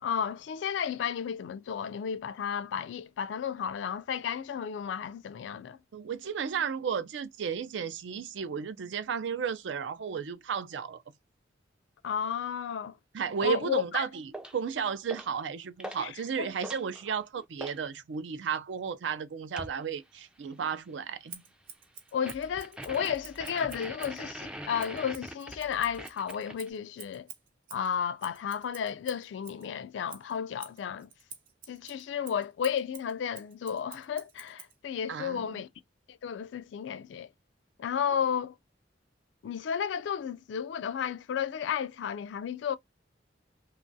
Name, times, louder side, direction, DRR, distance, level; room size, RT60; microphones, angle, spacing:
voice 1, 0.0-5.8 12.0-12.9 13.4-14.0 16.0-16.1 16.4-16.5 22.1-27.3 27.7-31.1 31.7-35.7 36.2-37.3 37.8-38.5 39.4-42.8, left 8 dB, 75° left, 0.3 m, -33 dB
voice 2, 5.9-11.0 13.1-21.4 35.1-35.6, right 7 dB, 75° right, 0.4 m, -33 dB
sound 1, 14.3-14.6 15.1-15.4 15.8-16.1 16.4-17.8 19.6-19.8 22.3-26.7, right 1 dB, 5° right, 0.3 m, -42 dB
Scissors, 21.3-24.2 24.8-29.7 30.1-34.8, right 7 dB, 50° right, 0.9 m, -49 dB
3.0 x 2.3 x 2.6 m
head